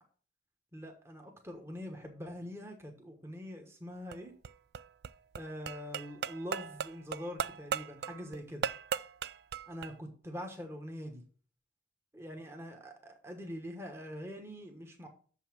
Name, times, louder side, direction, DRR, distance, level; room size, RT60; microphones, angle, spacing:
voice 1, 0.7-4.3 5.3-8.6 9.7-11.2 12.1-15.1, equal, 15° right, 3 dB, 1.2 m, -44 dB
sound 1, 3.9-9.9, right 7 dB, 55° right, 0.3 m, -38 dB
7.0 x 5.6 x 7.3 m, 0.43 s
head